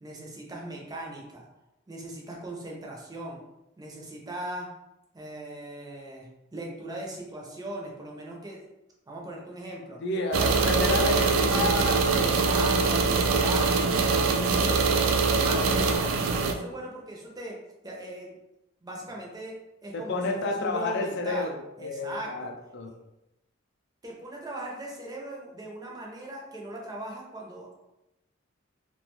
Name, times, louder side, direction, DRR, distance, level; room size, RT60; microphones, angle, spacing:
voice 1, 0.0-1.5 1.9-3.4 3.8-4.7 5.1-8.7 9.1-10.0 10.3-11.7 12.2-15.1 15.4-17.6 17.8-18.3 18.8-19.6 19.8-22.5 22.8-23.0 24.0-27.8, right 1 dB, 20° right, -2 dB, 0.5 m, -39 dB
voice 2, 10.0-12.3 19.9-22.9, left 2 dB, 60° left, 3 dB, 0.4 m, -30 dB
sound 1, 10.3-16.5, right 4 dB, 85° right, 0.3 m, -23 dB
2.4 x 2.2 x 2.9 m, 0.92 s
head